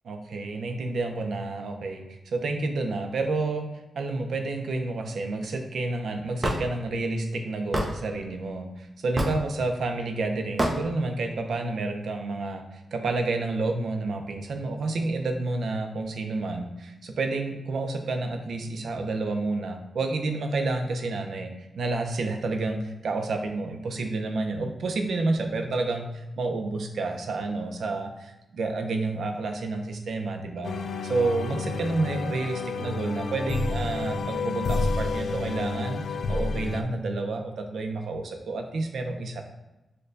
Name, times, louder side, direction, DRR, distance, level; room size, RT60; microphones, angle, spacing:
voice 1, 0.1-3.7 4.0-30.8 31.0-39.4, right 3 dB, 75° right, 4 dB, 0.5 m, -30 dB
Hammer / Wood, 6.4-6.6 7.7-7.9 9.2-9.4 10.6-10.8, right 1 dB, 20° right, 0.5 m, -25 dB
sound 1, 30.6-36.8, left 3 dB, 75° left, 0.3 m, -30 dB
6.4 x 2.2 x 2.6 m, 0.98 s
wide cardioid pair, 130°, 0 cm